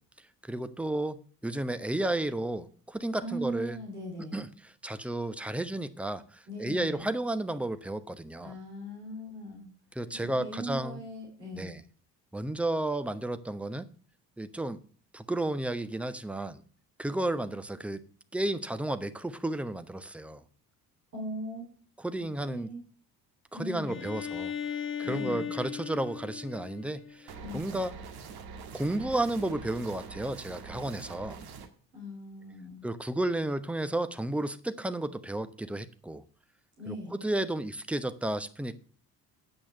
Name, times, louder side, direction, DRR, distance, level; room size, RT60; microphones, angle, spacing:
voice 1, 0.5-1.2 1.4-3.8 4.3-4.5 4.8-6.2 6.6-8.5 10.0-11.0 11.6-11.8 12.3-13.9 14.4-14.8 15.1-16.6 17.0-18.0 18.3-20.4 22.0-22.7 23.5-24.5 25.0-28.0 28.7-31.4 32.8-36.2 36.9-38.8, right 1 dB, 5° right, 0.9 m, -32 dB
voice 2, 3.2-4.4 6.5-7.1 8.4-9.7 10.1-11.8 21.1-21.6 22.1-22.8 23.5-24.1 25.0-25.5 27.4-27.8 31.9-32.8 36.8-37.2, equal, 80° right, 3.1 m, -40 dB
Bowed string instrument, 23.9-27.6, left 8 dB, 25° left, 1.5 m, -37 dB
sound 1, 27.3-31.7, right 5 dB, 50° right, 1.7 m, -44 dB
8.8 x 7.9 x 6.6 m
figure-of-eight pair, 55°, 47 cm